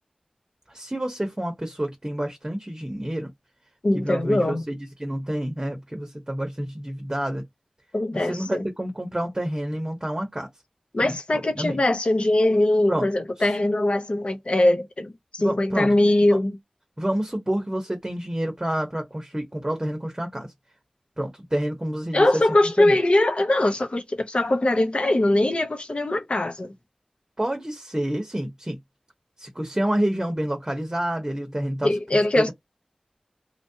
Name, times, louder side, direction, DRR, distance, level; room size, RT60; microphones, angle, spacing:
voice 1, 0.7-3.3 4.0-7.4 8.1-10.5 11.0-11.8 12.9-13.1 13.4-13.5 15.4-15.9 16.3-16.4 17.0-20.5 21.2-22.4 22.8-23.0 27.4-28.8 29.4-31.9 32.4-32.5, right 1 dB, 25° right, 0.9 m, -28 dB
voice 2, 3.8-4.6 7.9-8.6 10.9-16.6 22.1-26.7 31.8-32.5, left 1 dB, 60° left, 0.9 m, -21 dB
2.9 x 2.5 x 2.7 m
wide cardioid pair, 45°, 2 cm